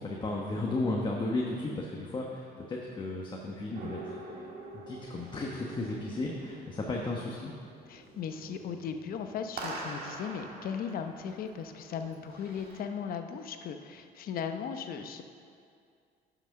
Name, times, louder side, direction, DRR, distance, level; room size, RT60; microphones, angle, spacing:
voice 1, 0.0-4.5 4.7-7.5, left 2 dB, 30° left, -2 dB, 1.1 m, -34 dB
sound 1, 3.7-12.8, right 2 dB, 60° right, 1.8 m, -45 dB
voice 2, 7.9-15.2, left 7 dB, 60° left, 7 dB, 0.8 m, -37 dB
10.0 x 6.1 x 6.4 m, 2.3 s
cardioid pair, 110°, 17 cm